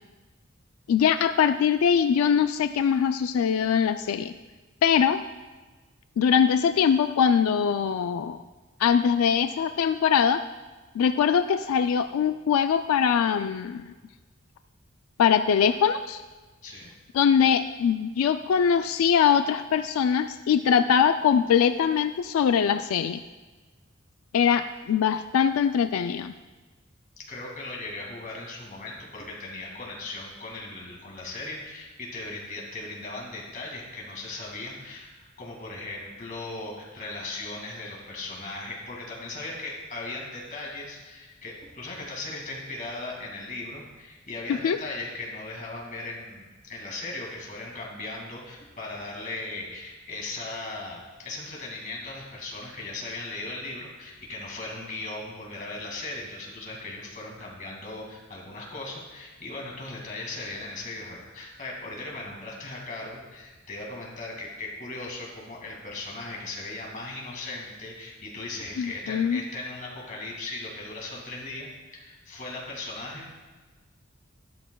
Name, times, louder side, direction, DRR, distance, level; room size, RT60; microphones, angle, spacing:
voice 1, 0.9-4.3 4.8-5.2 6.2-8.4 8.8-10.4 11.0-13.9 15.2-16.2 17.1-23.2 24.3-26.3 44.5-44.8 68.8-69.4, left 7 dB, 90° left, 10 dB, 0.3 m, -22 dB
voice 2, 27.2-73.4, left 2 dB, 40° left, -2 dB, 2.1 m, -38 dB
12.0 x 10.5 x 2.3 m, 1.3 s
head